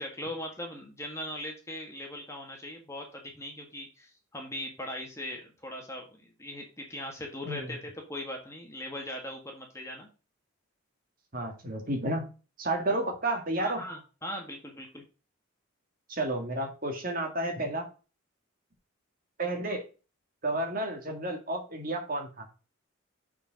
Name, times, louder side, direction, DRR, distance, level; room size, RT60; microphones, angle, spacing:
voice 1, 0.0-10.1 13.6-15.0, left 1 dB, 15° left, 1 dB, 1.6 m, -40 dB
voice 2, 11.3-12.3 12.6-13.8 16.1-17.9 19.4-19.8 20.4-22.5, right 1 dB, 40° right, 3 dB, 1.9 m, -31 dB
7.1 x 4.6 x 5.1 m, 0.33 s
head